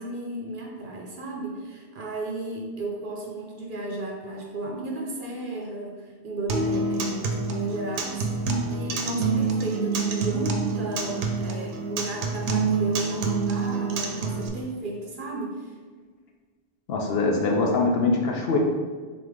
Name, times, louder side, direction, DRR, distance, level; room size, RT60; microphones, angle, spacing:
voice 1, 0.0-15.8, right 2 dB, 55° right, 0 dB, 0.7 m, -34 dB
Acoustic guitar, 6.5-14.5, right 4 dB, 80° right, 0.9 m, -27 dB
voice 2, 16.9-18.6, left 3 dB, 65° left, 0 dB, 0.8 m, -23 dB
3.7 x 3.5 x 3.4 m, 1.5 s
omnidirectional pair, 1.2 m